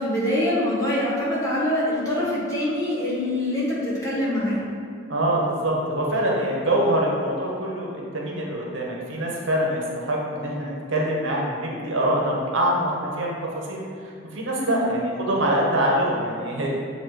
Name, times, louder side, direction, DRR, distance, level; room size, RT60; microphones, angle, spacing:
voice 1, 0.0-4.6 14.6-14.9, left 1 dB, 15° left, -8 dB, 1.3 m, -24 dB
voice 2, 5.1-13.4 13.7-16.7, right 1 dB, 65° right, -3 dB, 1.0 m, -24 dB
7.5 x 2.9 x 4.6 m, 2.3 s
head